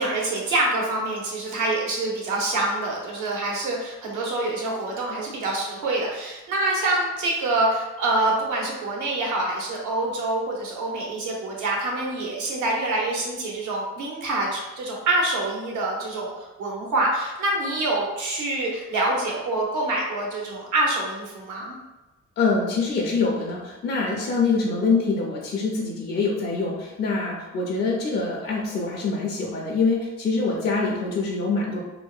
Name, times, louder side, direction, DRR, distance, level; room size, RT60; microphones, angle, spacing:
voice 1, 0.0-21.7, right 2 dB, 75° right, -2 dB, 0.8 m, -26 dB
voice 2, 22.4-31.8, left 4 dB, 35° left, -3 dB, 0.5 m, -25 dB
2.8 x 2.1 x 2.3 m, 1.1 s
cardioid pair, 90°, 30 cm